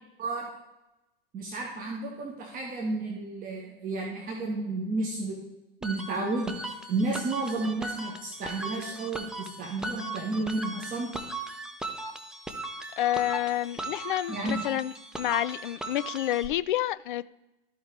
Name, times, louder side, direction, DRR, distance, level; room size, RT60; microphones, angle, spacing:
voice 1, 1.3-5.4 5.8-6.5 6.9-11.1 14.3-14.6, right 2 dB, 30° right, -1 dB, 1.8 m, -32 dB
sound 1, 5.8-16.5, right 2 dB, ahead, 0.8 m, -38 dB
voice 2, 13.0-17.3, left 13 dB, 55° left, 17 dB, 0.4 m, -29 dB
14.0 x 5.4 x 3.4 m, 0.96 s
figure-of-eight pair, 85°, 30 cm